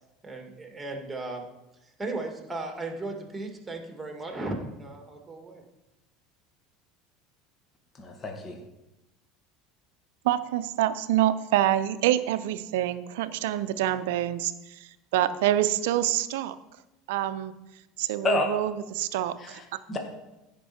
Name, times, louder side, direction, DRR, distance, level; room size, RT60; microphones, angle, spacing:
voice 1, 0.2-1.4 2.0-5.6, right 2 dB, 10° right, 3 dB, 2.4 m, -36 dB
voice 2, 8.0-8.6 18.2-18.5 19.4-20.0, left 2 dB, 30° left, 3 dB, 1.7 m, -29 dB
voice 3, 10.2-16.6 17.1-17.5 18.0-19.6, right 12 dB, 70° right, 14 dB, 0.6 m, -26 dB
15.5 x 5.4 x 4.4 m, 0.95 s
hypercardioid pair, 75°, 0 cm